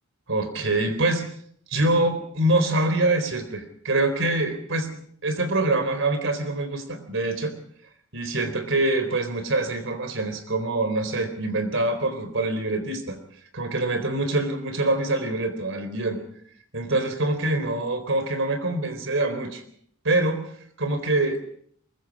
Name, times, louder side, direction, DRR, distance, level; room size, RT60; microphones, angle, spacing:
voice 1, 0.3-1.3 1.7-4.9 5.2-7.5 8.1-13.2 13.5-16.2 16.7-19.6 20.0-20.5 20.8-21.4, right 2 dB, 65° right, 9 dB, 4.0 m, -25 dB
23.5 x 22.0 x 5.3 m, 0.64 s
head